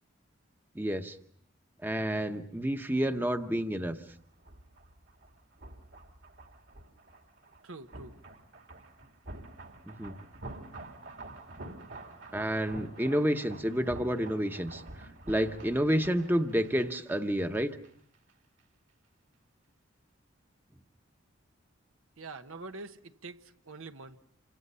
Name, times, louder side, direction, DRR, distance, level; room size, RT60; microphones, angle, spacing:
voice 1, 0.7-1.2 1.8-4.0 9.9-10.1 12.3-17.8, equal, 10° right, 0.9 m, -30 dB
sound 1, 4.1-17.9 18.1-18.3, right 2 dB, 65° right, 2.8 m, -48 dB
voice 2, 7.6-8.1 22.2-24.2, right 3 dB, 85° right, 1.2 m, -45 dB
28.0 x 25.0 x 5.5 m
head